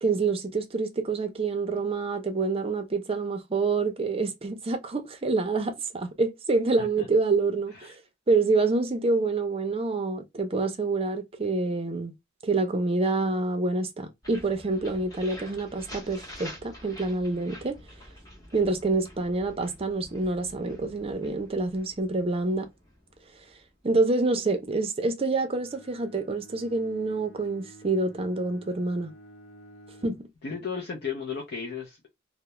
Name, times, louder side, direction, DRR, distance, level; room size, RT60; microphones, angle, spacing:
voice 1, 0.0-7.9 8.3-12.2 12.4-17.8 18.5-22.7 23.8-29.1 30.0-30.2, right 3 dB, 30° right, 0.5 m, -27 dB
sound 1, 14.2-24.0, equal, 20° left, 0.9 m, -47 dB
Bowed string instrument, 25.4-30.3, right 1 dB, 80° left, 0.8 m, -51 dB
voice 2, 30.4-32.1, left 6 dB, 55° left, 0.6 m, -35 dB
2.3 x 2.1 x 2.9 m
head